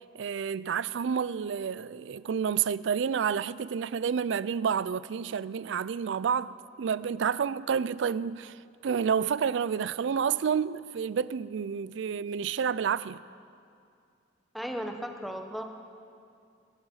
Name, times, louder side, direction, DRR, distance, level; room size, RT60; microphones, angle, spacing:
voice 1, 0.1-13.2, right 7 dB, 75° right, 0.4 m, -29 dB
voice 2, 14.5-15.6, equal, ahead, 1.0 m, -35 dB
24.0 x 10.5 x 5.6 m
head